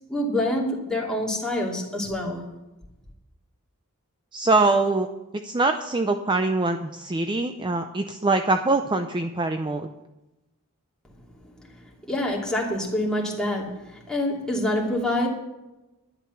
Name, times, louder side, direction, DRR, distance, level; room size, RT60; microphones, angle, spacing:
voice 1, 0.1-2.4 11.6-11.7 12.1-15.3, left 1 dB, 5° left, -3 dB, 2.8 m, -26 dB
voice 2, 4.3-5.1 5.3-9.9, right 3 dB, 20° right, 7 dB, 0.5 m, -23 dB
11.5 x 10.5 x 5.8 m, 1.0 s
head